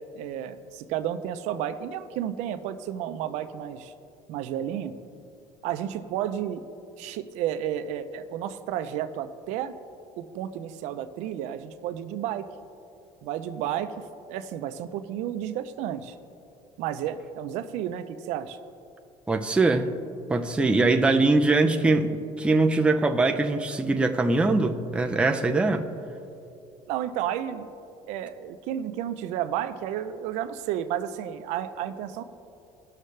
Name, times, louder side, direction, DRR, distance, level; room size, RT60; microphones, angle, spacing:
voice 1, 0.0-3.9 4.3-5.0 5.6-6.6 7.0-9.7 10.2-12.5 13.2-14.0 14.3-16.2 16.8-18.6 26.9-27.7 28.1-32.2, right 10 dB, 75° right, 10 dB, 0.6 m, -32 dB
voice 2, 19.3-19.9 20.3-25.9, right 3 dB, 10° right, 4 dB, 0.6 m, -22 dB
19.0 x 6.5 x 3.3 m, 2.6 s
cardioid pair, 140°, 12 cm